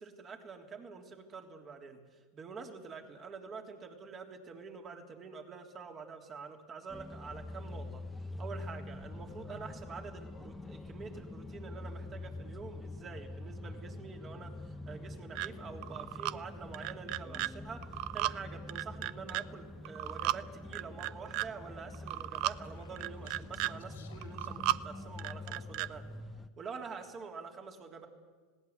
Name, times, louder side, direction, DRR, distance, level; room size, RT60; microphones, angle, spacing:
voice 1, 0.0-26.0 26.6-28.1, right 5 dB, 35° right, 4 dB, 3.4 m, -47 dB
sound 1, 6.9-26.5, left 2 dB, 10° left, 1.0 m, -45 dB
sound 2, 15.3-15.5 15.8-16.3 16.7-17.5 17.8-18.3 18.7-19.4 19.8-20.4 20.7-21.5 21.9-22.5 23.0-23.7 24.2-24.8 25.2-25.9, right 17 dB, 60° right, 0.5 m, -34 dB
Speech, 22.1-25.6, left 6 dB, 85° left, 3.2 m, -62 dB
19.0 x 17.0 x 9.7 m, 1.4 s
hypercardioid pair, 90°, 0 cm